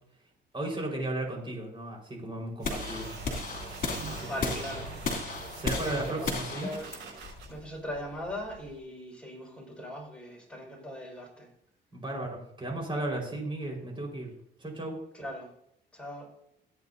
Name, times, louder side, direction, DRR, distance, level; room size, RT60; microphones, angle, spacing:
voice 1, 0.5-3.1 4.0-4.5 5.6-6.7 11.9-14.3 14.6-15.0, right 1 dB, 25° right, -1 dB, 4.6 m, -35 dB
sound 1, 2.6-8.7, left 3 dB, 45° left, 3.0 m, -35 dB
sound 2, 2.6-7.5, right 5 dB, 80° right, 5.1 m, -43 dB
voice 2, 3.8-5.0 5.6-6.9 7.5-11.5 15.1-15.5 15.9-16.3, equal, 5° left, -2 dB, 5.1 m, -40 dB
16.5 x 9.1 x 2.7 m, 0.74 s
cardioid pair, 90°, 20 cm